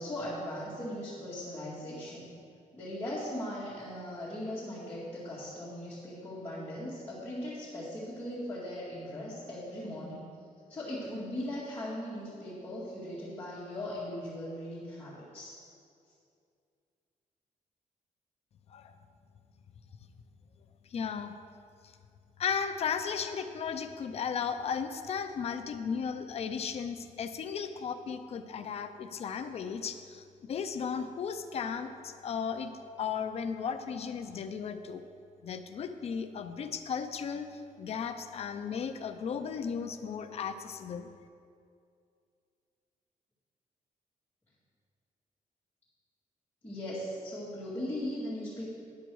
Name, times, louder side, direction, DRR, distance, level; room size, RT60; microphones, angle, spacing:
voice 1, 0.0-2.3 2.7-10.2 10.7-15.6 46.6-48.7, left 1 dB, 15° left, -12 dB, 2.1 m, -39 dB
voice 2, 20.9-21.3 22.4-32.7 33.0-35.0 35.4-41.1, left 6 dB, 50° left, 8 dB, 0.5 m, -35 dB
10.5 x 7.8 x 4.7 m, 2.4 s
wide cardioid pair, 170°, 14 cm